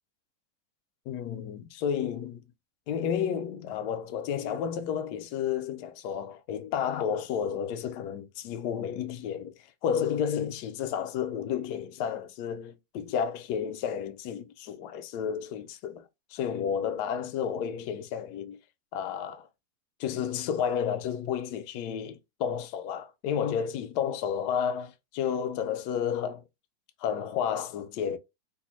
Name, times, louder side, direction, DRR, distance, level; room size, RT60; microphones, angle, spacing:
voice 1, 1.1-2.4 2.9-9.5 9.8-18.6 18.9-19.5 20.0-26.4 27.0-28.2, left 8 dB, 75° left, 1.1 m, -31 dB
3.4 x 2.5 x 3.0 m
omnidirectional pair, 1.9 m